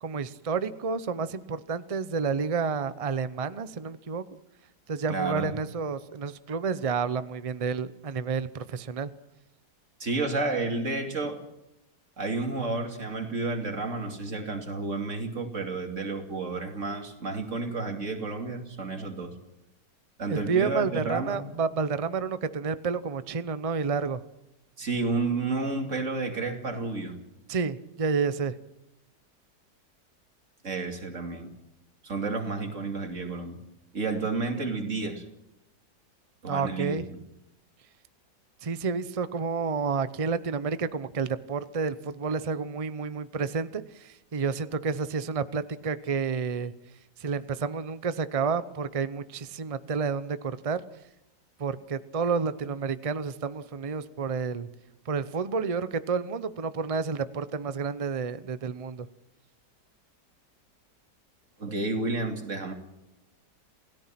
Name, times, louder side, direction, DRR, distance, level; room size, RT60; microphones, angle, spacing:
voice 1, 0.0-4.2 4.9-9.1 20.3-24.2 27.5-28.5 36.5-37.0 38.6-46.7 47.2-50.8 51.6-54.7 55.1-59.1, right 5 dB, 65° right, 13 dB, 0.3 m, -30 dB
voice 2, 5.1-5.5 10.0-11.4 12.2-19.3 20.2-21.4 24.8-27.2 30.6-31.5 32.0-33.6 33.9-35.2 36.4-37.2 61.6-62.7, right 3 dB, 45° right, 4 dB, 2.9 m, -31 dB
28.0 x 17.0 x 5.9 m, 0.89 s
omnidirectional pair, 1.9 m